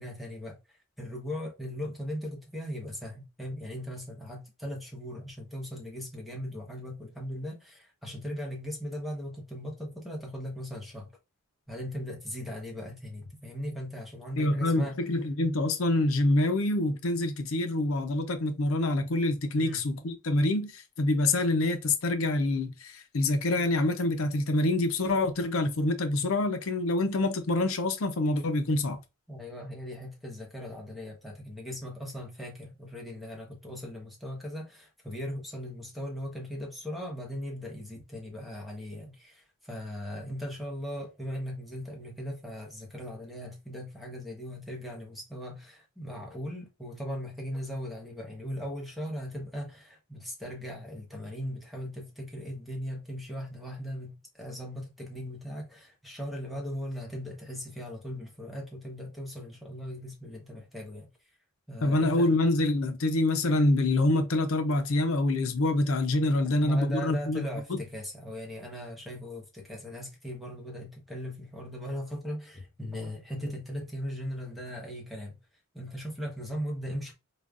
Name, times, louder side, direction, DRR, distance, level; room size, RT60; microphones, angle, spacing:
voice 1, 0.0-11.1 11.7-15.0 19.6-19.8 29.3-61.1 61.7-62.5 66.5-75.4 75.7-77.1, equal, ahead, 1.0 m, -38 dB
voice 2, 14.4-29.0 61.8-67.8, left 2 dB, 75° left, 0.6 m, -26 dB
4.9 x 2.3 x 2.4 m
head